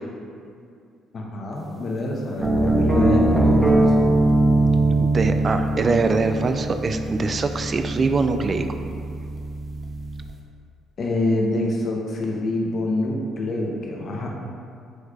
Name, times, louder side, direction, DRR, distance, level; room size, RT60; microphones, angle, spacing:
voice 1, 1.1-3.9 11.0-14.3, left 1 dB, 55° left, -1 dB, 0.8 m, -26 dB
sound 1, 2.4-10.3, right 2 dB, 25° right, 0.8 m, -21 dB
voice 2, 5.0-8.8, right 3 dB, 40° right, 7 dB, 0.3 m, -23 dB
6.3 x 3.2 x 2.5 m, 2.3 s
supercardioid pair, 60°, 0 cm